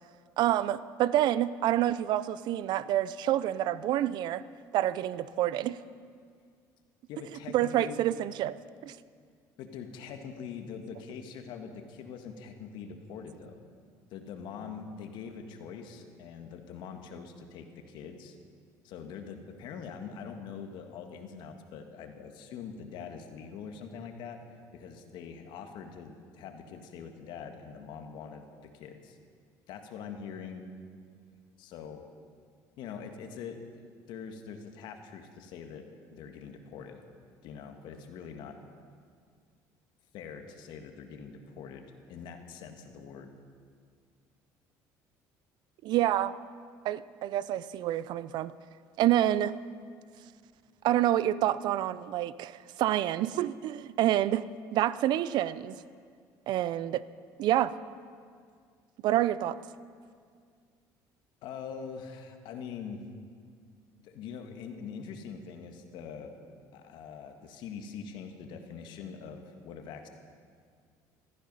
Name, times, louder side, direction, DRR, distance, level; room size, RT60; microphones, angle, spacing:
voice 1, 0.4-4.4 4.7-5.8 7.5-8.5 8.8-9.0 45.8-46.4 46.8-48.5 49.0-49.6 50.8-55.8 56.5-57.0 57.4-57.7 59.0-59.6, right 13 dB, 65° right, 17 dB, 0.5 m, -28 dB
voice 2, 7.1-8.0 9.6-13.6 14.1-18.4 18.8-24.4 24.7-29.2 29.7-30.6 31.6-32.1 32.8-33.6 34.1-37.0 37.4-38.6 40.1-43.3 61.4-63.0 64.0-66.3 66.7-70.1, left 6 dB, 70° left, 5 dB, 1.7 m, -43 dB
16.0 x 14.0 x 5.5 m, 2.1 s
supercardioid pair, 95°, 8 cm